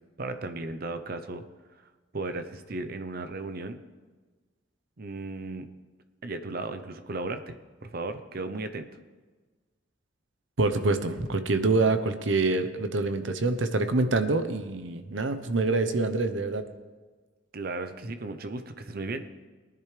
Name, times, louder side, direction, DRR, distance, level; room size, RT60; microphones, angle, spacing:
voice 1, 0.2-1.4 2.1-3.8 5.0-5.7 6.2-7.6 7.8-8.9 17.5-19.3, right 2 dB, 55° right, 9 dB, 0.8 m, -35 dB
voice 2, 10.6-16.6, right 3 dB, 85° right, 9 dB, 0.9 m, -26 dB
19.5 x 10.5 x 3.4 m, 1.3 s
head